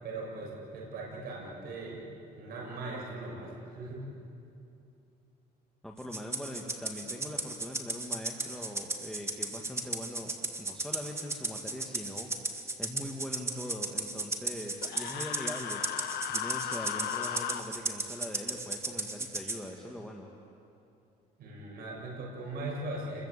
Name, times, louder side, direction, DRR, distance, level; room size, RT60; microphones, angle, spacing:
voice 1, 0.0-2.0 2.3-4.1 21.4-23.3, right 2 dB, 65° right, -3 dB, 7.5 m, -39 dB
voice 2, 5.8-20.3, left 1 dB, 5° left, -1 dB, 2.1 m, -42 dB
Rattle (instrument), 6.1-19.6, right 2 dB, 15° right, 2.1 m, -35 dB
Human voice, 14.8-17.6, left 10 dB, 70° left, 1.6 m, -36 dB
29.5 x 22.5 x 8.5 m, 2.7 s
cardioid pair, 110°, 17 cm